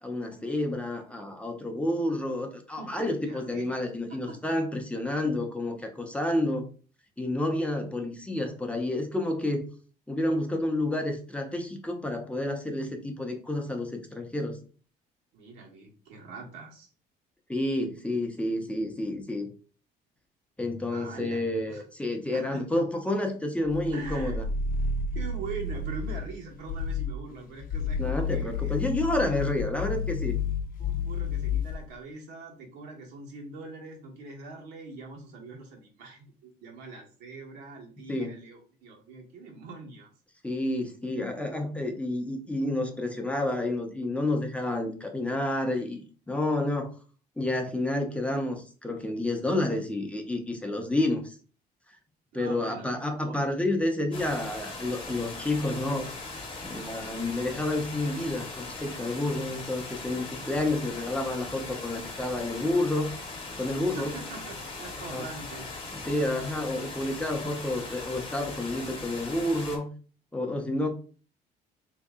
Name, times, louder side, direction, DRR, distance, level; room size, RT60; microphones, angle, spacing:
voice 1, 0.0-6.7 7.2-9.6 10.1-14.6 17.5-19.5 20.6-24.4 28.0-30.4 38.1-38.4 40.4-46.9 47.4-51.3 52.3-56.1 56.6-63.1 63.6-64.1 65.1-65.3 65.9-69.9 70.3-70.9, left 1 dB, 5° left, 3 dB, 0.6 m, -30 dB
voice 2, 2.8-4.4 15.3-16.9 20.9-21.8 22.3-22.8 23.9-24.5 25.1-28.7 29.2-29.4 30.8-40.1 52.3-53.4 63.9-65.7, right 3 dB, 85° right, 0 dB, 1.2 m, -43 dB
sound 1, 23.6-26.3 26.7-27.2 27.6-31.9, left 4 dB, 55° left, 0.6 m, -31 dB
sound 2, 54.1-69.8, left 3 dB, 35° left, 1.0 m, -40 dB
3.1 x 2.7 x 3.6 m, 0.39 s
cardioid pair, 110°, 17 cm